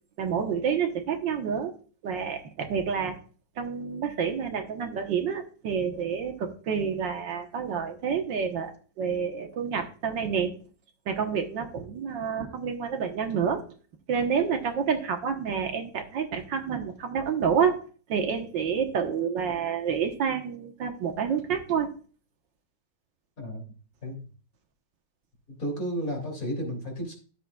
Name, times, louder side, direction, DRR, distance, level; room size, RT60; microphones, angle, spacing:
voice 1, 0.2-1.7 2.0-3.2 3.6-10.5 11.1-13.6 14.1-21.9, right 7 dB, 75° right, 4 dB, 1.9 m, -28 dB
voice 2, 25.6-27.1, equal, 50° left, 1 dB, 3.3 m, -32 dB
13.0 x 7.6 x 2.3 m, 0.39 s
omnidirectional pair, 2.0 m